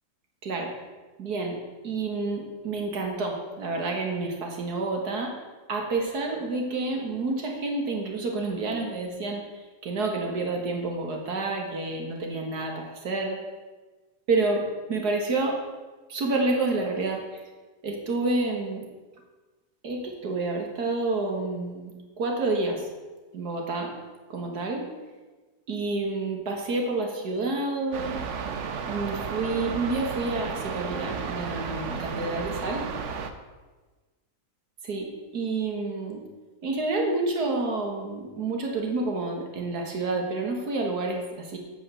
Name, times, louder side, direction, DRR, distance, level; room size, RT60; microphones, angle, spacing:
voice 1, 0.4-0.7 1.2-1.6 1.8-5.3 5.7-13.4 14.3-15.6 16.1-17.4 17.8-18.8 19.8-22.9 23.3-23.9 24.3-24.9 25.7-28.2 28.9-32.9 34.8-36.2 36.6-41.6, right 3 dB, 90° right, 1 dB, 2.1 m, -29 dB
sound 1, 27.9-33.3, right 6 dB, 55° right, 1.0 m, -33 dB
8.5 x 7.2 x 6.7 m, 1.3 s
omnidirectional pair, 1.7 m